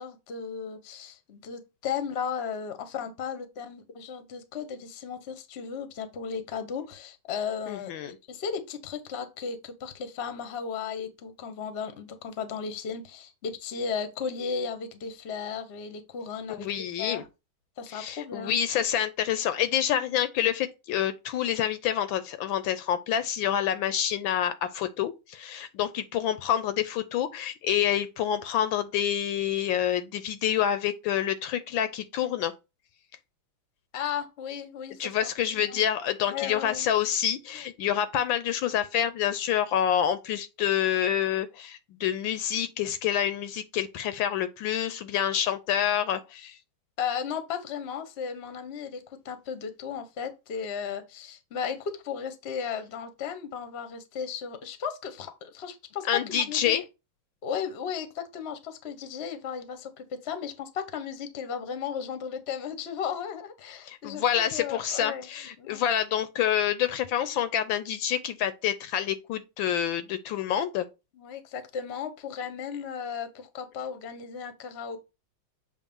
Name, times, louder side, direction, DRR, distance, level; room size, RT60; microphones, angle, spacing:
voice 1, 0.0-16.7 17.0-17.2 17.8-18.5 33.9-35.1 35.5-35.8 36.3-36.9 47.0-56.7 57.4-65.3 65.6-65.8 71.1-75.0, left 7 dB, 50° left, 0.8 m, -35 dB
voice 2, 7.7-8.2 16.5-17.2 17.9-32.5 35.0-46.6 56.1-56.8 63.9-70.9, left 10 dB, 75° left, 1.3 m, -27 dB
7.2 x 2.6 x 5.3 m
omnidirectional pair, 2.3 m